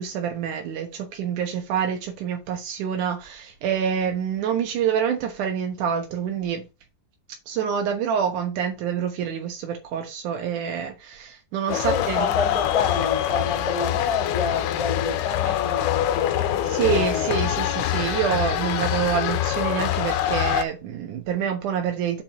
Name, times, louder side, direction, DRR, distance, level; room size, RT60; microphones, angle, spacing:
voice 1, 0.0-6.6 7.5-12.3 15.4-15.6 16.6-22.2, right 8 dB, 80° right, 1.8 m, -27 dB
sound 1, 11.7-20.6, left 12 dB, 85° left, 3.2 m, -25 dB
voice 2, 11.7-17.4 18.6-18.7, left 5 dB, 25° left, 2.5 m, -28 dB
7.4 x 4.4 x 5.3 m
omnidirectional pair, 5.3 m